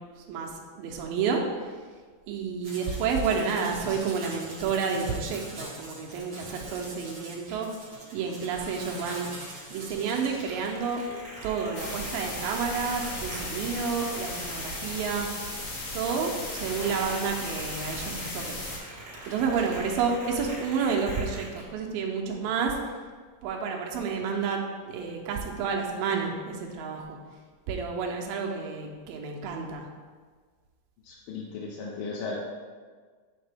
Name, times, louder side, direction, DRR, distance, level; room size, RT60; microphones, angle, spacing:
voice 1, 0.3-1.7 2.3-7.7 8.1-9.3 9.7-15.3 15.9-18.6 19.3-22.8 23.4-27.2 27.7-29.9, right 5 dB, 85° right, 0 dB, 2.5 m, -30 dB
sound 1, 2.6-21.6, right 1 dB, 60° right, 0.8 m, -43 dB
sound 2, 11.7-18.8, left 2 dB, 60° left, 1.4 m, -36 dB
voice 2, 31.0-32.4, left 4 dB, 80° left, -3 dB, 2.5 m, -36 dB
8.7 x 3.7 x 3.4 m, 1.5 s
omnidirectional pair, 4.0 m